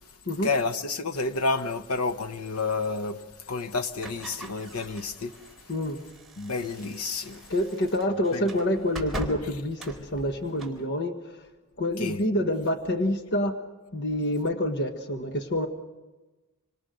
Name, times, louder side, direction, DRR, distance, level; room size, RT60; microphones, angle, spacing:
voice 1, 0.4-3.2 3.5-5.3 6.4-7.5 8.3-8.5 12.0-12.2, left 3 dB, 80° left, 1.1 m, -30 dB
sound 1, 4.0-10.8, right 1 dB, ahead, 4.0 m, -41 dB
voice 2, 7.5-11.4 11.8-13.6 13.9-15.7, left 1 dB, 50° left, 1.4 m, -27 dB
27.0 x 25.0 x 6.4 m
head